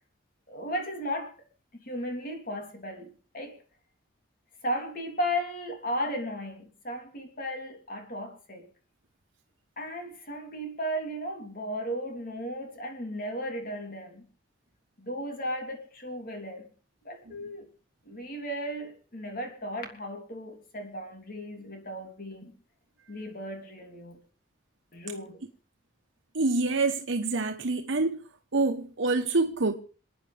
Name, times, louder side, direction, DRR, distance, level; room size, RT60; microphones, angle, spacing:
voice 1, 0.5-1.3 1.8-3.6 4.6-8.7 9.8-14.2 15.0-16.7 17.0-17.7 18.0-22.5 23.1-24.2 24.9-25.4, equal, 45° left, 3.3 m, -35 dB
voice 2, 26.3-28.2 28.5-29.7, right 3 dB, 90° right, 1.1 m, -26 dB
28.0 x 9.7 x 3.4 m
head